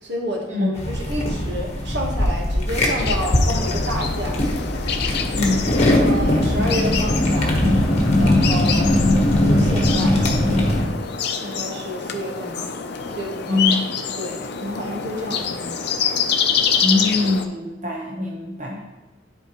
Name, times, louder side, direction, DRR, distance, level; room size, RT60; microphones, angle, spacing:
voice 1, 0.0-4.7 6.0-7.6 8.2-9.0 9.4-10.9 11.4-12.8 13.1-13.8 14.2-16.1, equal, 65° right, -1 dB, 1.3 m, -30 dB
sound 1, 0.8-10.9, left 1 dB, 35° left, 1.2 m, -20 dB
sound 2, 3.0-17.4, left 6 dB, 60° left, 0.6 m, -26 dB
voice 2, 5.3-5.9 13.5-13.8 16.8-18.8, left 2 dB, 40° right, -2 dB, 1.0 m, -23 dB
10.0 x 4.4 x 3.0 m, 1.1 s
head